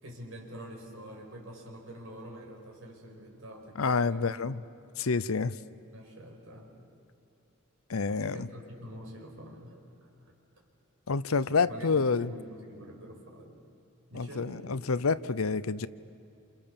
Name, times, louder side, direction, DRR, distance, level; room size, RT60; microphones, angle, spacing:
voice 1, 0.0-4.5 5.9-6.7 7.9-10.1 11.7-13.5 14.1-14.6, equal, 65° right, 0 dB, 5.7 m, -46 dB
voice 2, 3.8-4.6 5.0-5.6 7.9-8.5 11.1-12.3 14.1-15.9, left 4 dB, 85° left, 15 dB, 0.7 m, -28 dB
29.0 x 28.5 x 7.1 m, 2.7 s
head